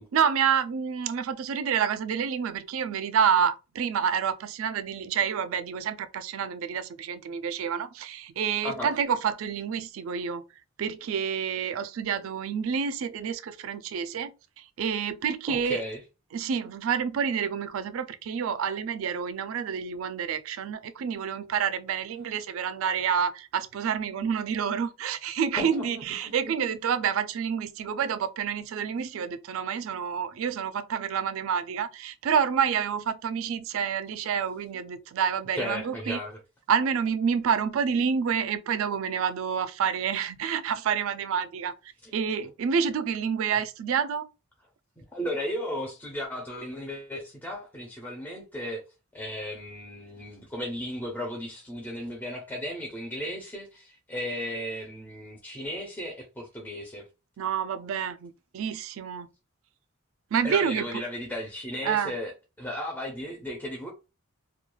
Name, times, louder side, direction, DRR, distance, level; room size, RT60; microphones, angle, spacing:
voice 1, 0.1-10.4 10.8-15.8 16.3-36.2 36.7-41.7 42.1-44.3 57.4-59.3 60.3-60.9 61.8-62.1, right 7 dB, 75° right, 0.3 m, -28 dB
voice 2, 15.5-16.0 25.6-26.3 35.6-36.4 42.0-42.2 45.0-48.8 49.1-57.1 60.4-63.9, left 1 dB, 10° left, 0.4 m, -35 dB
2.3 x 2.2 x 3.0 m
head